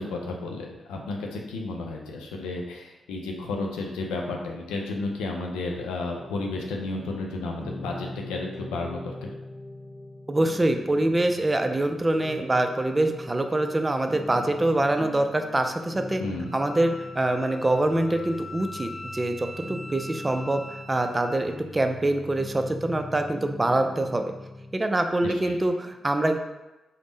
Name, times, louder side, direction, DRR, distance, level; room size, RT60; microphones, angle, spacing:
voice 1, 0.0-9.3 16.2-16.5 25.2-25.6, left 2 dB, 90° left, 1 dB, 0.5 m, -32 dB
sound 1, 6.2-24.8, left 1 dB, 35° left, 0.6 m, -41 dB
voice 2, 10.3-16.2 16.5-20.6 20.9-24.2 24.7-26.4, right 1 dB, 25° right, 6 dB, 0.4 m, -25 dB
Wind instrument woodwind instrument, 16.4-21.6, left 2 dB, 60° left, 1.0 m, -42 dB
3.5 x 2.1 x 3.9 m, 1.0 s
supercardioid pair, 40°, 0 cm